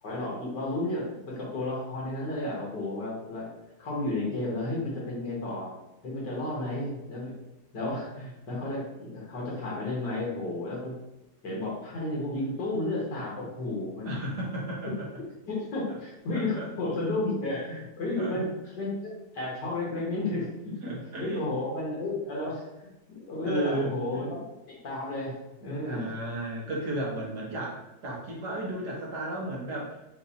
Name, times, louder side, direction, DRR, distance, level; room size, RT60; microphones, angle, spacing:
voice 1, 0.0-3.5 3.8-5.7 6.0-7.3 7.7-11.0 11.4-14.2 15.5-18.5 18.8-19.0 19.3-25.3 25.6-26.1, left 2 dB, 90° left, -5 dB, 2.2 m, -32 dB
voice 2, 14.0-15.1 15.9-16.0 16.3-16.7 18.2-18.4 20.8-21.4 23.4-24.2 25.6-30.0, right 1 dB, 75° right, -4 dB, 1.8 m, -34 dB
6.5 x 2.7 x 2.8 m, 0.98 s
omnidirectional pair, 1.8 m